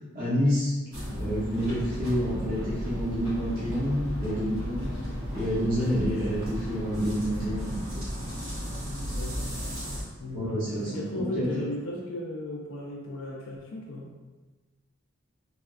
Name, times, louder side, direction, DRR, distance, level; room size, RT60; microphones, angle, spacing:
voice 1, 0.1-0.7 1.2-4.9 5.3-8.1 10.3-11.6, equal, 45° right, -10 dB, 0.7 m, -28 dB
sound 1, 0.9-10.0, equal, 80° right, 1.4 m, -34 dB
voice 2, 8.8-9.6 10.2-14.3, left 1 dB, 70° left, -3 dB, 0.4 m, -36 dB
3.4 x 2.2 x 2.3 m, 1.3 s
head